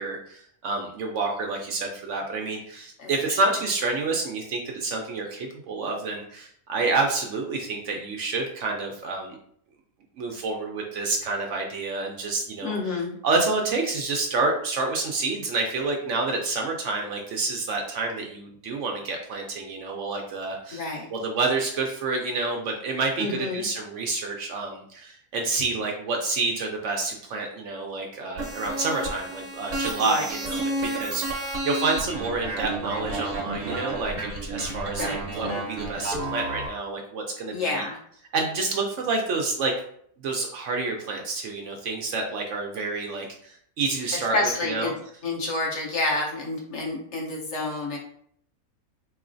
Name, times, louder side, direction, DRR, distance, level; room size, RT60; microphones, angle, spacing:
voice 1, 0.0-9.4 10.2-37.8 38.3-39.7 40.2-44.9, right 3 dB, 65° right, 1 dB, 0.8 m, -28 dB
voice 2, 12.6-13.1 20.7-21.1 23.2-23.7 30.0-30.2 35.0-35.2 37.5-38.0 44.3-44.9 45.2-48.0, left 2 dB, 55° left, -2 dB, 1.0 m, -28 dB
sound 1, 28.4-36.7, right 2 dB, 45° right, 1.0 m, -31 dB
4.0 x 3.0 x 2.5 m, 0.65 s
omnidirectional pair, 1.5 m